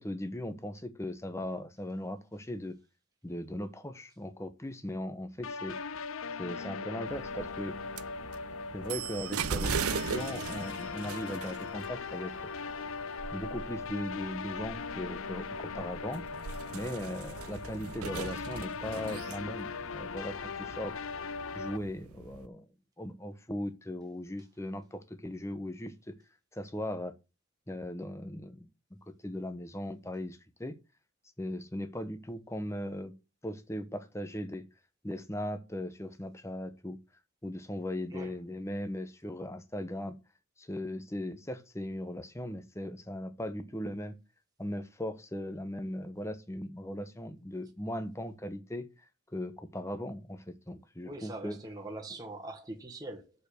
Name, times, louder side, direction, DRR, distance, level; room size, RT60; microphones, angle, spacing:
voice 1, 0.0-2.8 3.2-5.8 6.4-7.8 8.7-12.3 13.3-16.2 16.7-21.0 21.5-22.7 23.0-26.1 26.5-27.1 27.7-30.7 31.4-33.2 33.4-34.7 35.0-37.0 37.4-40.2 40.6-44.2 44.6-48.9 49.3-51.6, left 1 dB, 15° left, 1.0 m, -38 dB
sound 1, 5.4-21.8, left 5 dB, 70° left, 0.6 m, -39 dB
sound 2, 7.1-22.5, right 6 dB, 85° right, 0.7 m, -40 dB
voice 2, 51.0-53.3, right 2 dB, 15° right, 1.6 m, -42 dB
6.9 x 5.4 x 6.5 m
head